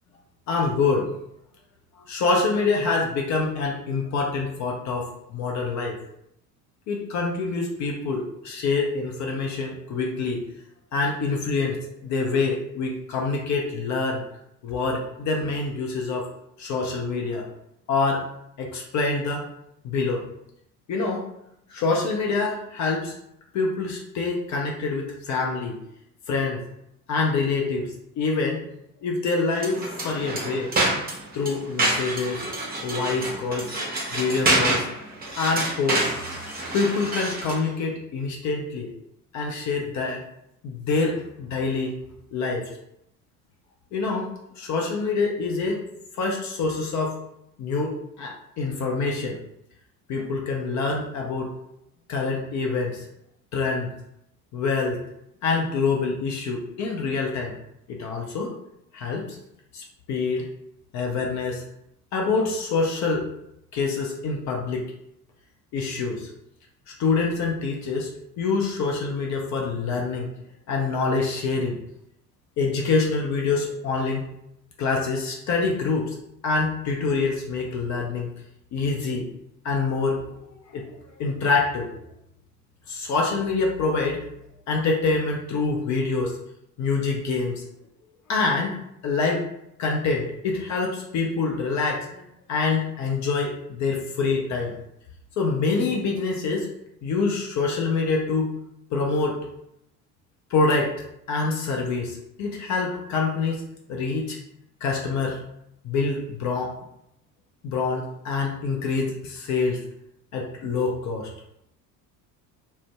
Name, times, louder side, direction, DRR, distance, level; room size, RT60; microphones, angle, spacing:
voice 1, 0.5-1.1 2.1-6.0 6.9-10.4 10.9-14.2 14.6-16.3 16.6-17.4 17.9-18.3 18.6-19.5 19.8-20.2 20.9-21.2 21.7-23.1 23.5-25.8 26.3-26.6 27.1-28.6 29.0-30.7 31.3-32.4 32.8-33.7 34.1-34.9 35.4-38.9 39.3-40.2 40.6-41.9 42.3-42.7 43.9-44.3 44.6-45.8 46.2-47.2 47.6-49.4 50.1-51.5 52.1-53.1 53.5-53.9 54.5-55.0 55.4-57.6 57.9-58.5 58.9-59.4 59.7-60.5 60.9-61.6 62.1-63.3 63.7-64.8 65.7-66.3 67.0-68.1 68.4-70.3 70.7-71.8 72.6-74.3 74.8-76.2 76.4-78.3 78.7-79.3 79.6-80.3 80.7-81.9 82.9-84.2 84.7-86.4 86.8-87.6 88.3-88.7 89.0-89.4 89.8-92.2 92.5-94.7 95.4-96.7 97.0-98.5 98.9-99.5 100.5-101.0 101.3-103.6 103.9-104.4 104.8-105.5 105.8-106.7 107.6-109.8 110.3-111.3, left 4 dB, 40° left, 0 dB, 0.5 m, -26 dB
sound 1, 29.5-37.7, right 2 dB, 20° right, 0.8 m, -27 dB
2.5 x 2.1 x 3.2 m, 0.78 s
figure-of-eight pair, 60°, 47 cm